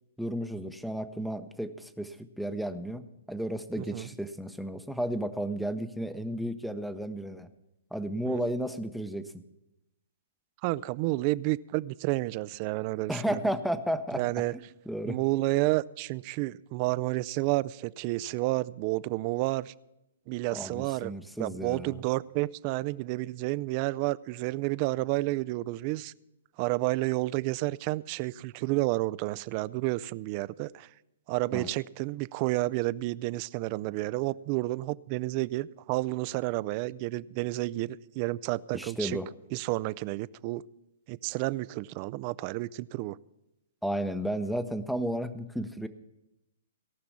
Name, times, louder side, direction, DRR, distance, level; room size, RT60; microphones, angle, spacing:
voice 1, 0.2-7.5 7.9-9.4 13.1-14.4 14.9-15.2 20.5-22.0 31.5-31.7 38.7-39.3 43.8-45.9, equal, ahead, 12 dB, 0.7 m, -33 dB
voice 2, 3.8-4.1 8.2-8.4 10.6-13.4 14.1-14.5 15.1-19.7 20.3-21.1 21.4-26.1 26.6-30.9 31.3-39.2 39.5-40.6 41.1-43.2, right 19 dB, 40° right, 19 dB, 0.3 m, -30 dB
17.5 x 6.0 x 7.0 m, 0.91 s
hypercardioid pair, 125°, 0 cm